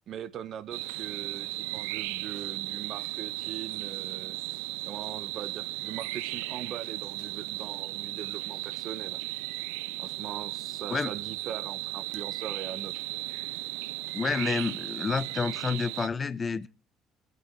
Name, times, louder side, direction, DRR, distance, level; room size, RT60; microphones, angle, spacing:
voice 1, 0.1-4.4 4.9-9.2 10.0-13.0, right 9 dB, 60° right, 1.4 m, -41 dB
sound 1, 0.7-16.1, right 19 dB, 80° right, 0.7 m, -36 dB
voice 2, 14.1-16.7, left 5 dB, 35° left, 1.0 m, -29 dB
25.5 x 9.4 x 3.2 m
hypercardioid pair, 60°, 0 cm